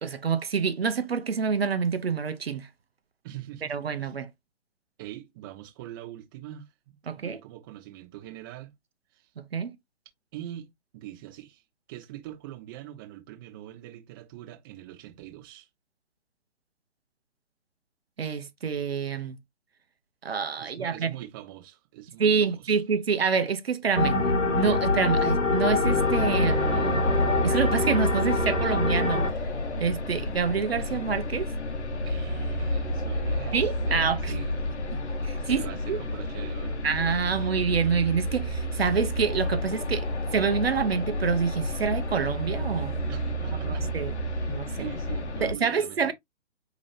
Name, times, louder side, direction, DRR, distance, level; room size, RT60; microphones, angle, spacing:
voice 1, 0.0-2.7 3.7-4.3 7.1-7.4 9.4-9.8 18.2-19.4 20.2-21.1 22.2-24.2 24.5-27.1 27.4-29.3 29.8-31.5 33.5-34.3 35.2-36.0 36.8-43.0 43.6-44.1 44.5-44.9 45.4-46.1, right 6 dB, 55° right, 0.7 m, -27 dB
voice 2, 3.2-4.1 5.0-8.7 9.1-9.3 10.3-11.6 11.9-15.7 20.6-22.8 32.0-33.6 33.8-34.8 35.0-36.8 43.1-43.9 44.2-46.1, right 13 dB, 20° right, 0.9 m, -43 dB
sound 1, 24.0-29.3, left 3 dB, 90° left, 1.3 m, -25 dB
sound 2, 25.8-45.5, equal, 65° left, 1.0 m, -30 dB
4.8 x 2.9 x 3.1 m
figure-of-eight pair, 135°, 37 cm